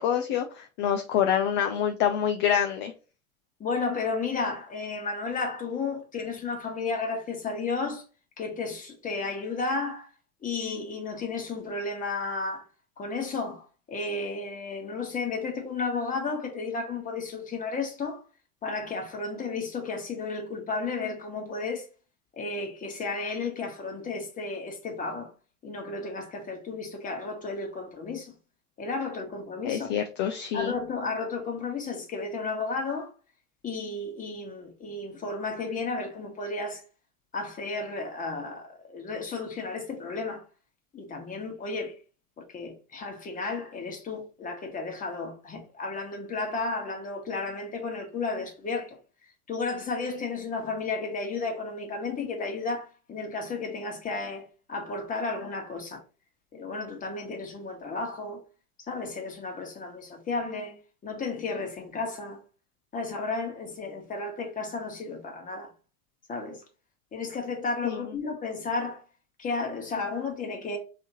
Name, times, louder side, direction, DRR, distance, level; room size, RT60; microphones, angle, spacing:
voice 1, 0.0-2.9 29.6-30.8 67.8-68.0, left 9 dB, 40° left, 0.5 m, -26 dB
voice 2, 3.6-8.0 8.4-10.1 10.4-12.6 13.0-18.2 18.6-21.9 22.4-25.3 25.6-28.3 28.8-29.9 30.5-33.1 33.6-36.8 37.3-40.4 40.9-42.0 42.4-49.0 49.5-56.0 56.5-58.4 58.9-60.8 61.0-62.4 62.9-65.7 66.3-66.6 67.1-69.0 69.4-70.8, left 3 dB, 20° left, 1.3 m, -33 dB
3.4 x 2.8 x 4.1 m
figure-of-eight pair, 95°, 43 cm